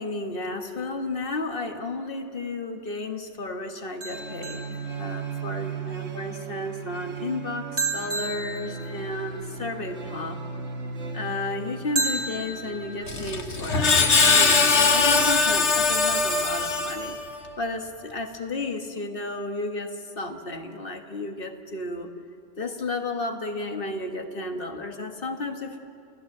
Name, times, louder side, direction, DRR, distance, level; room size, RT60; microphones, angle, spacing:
voice 1, 0.0-10.4 11.1-17.2 17.6-22.1 22.6-25.8, left 2 dB, 45° left, 5 dB, 1.7 m, -33 dB
sound 1, 4.0-5.5 7.8-9.4 11.9-13.0, right 3 dB, 60° right, 3.5 m, -32 dB
sound 2, 4.1-15.3, right 5 dB, 90° right, 1.8 m, -37 dB
Screech, 13.1-17.4, left 4 dB, 65° left, 1.6 m, -21 dB
30.0 x 15.5 x 7.9 m, 2.4 s
omnidirectional pair, 1.3 m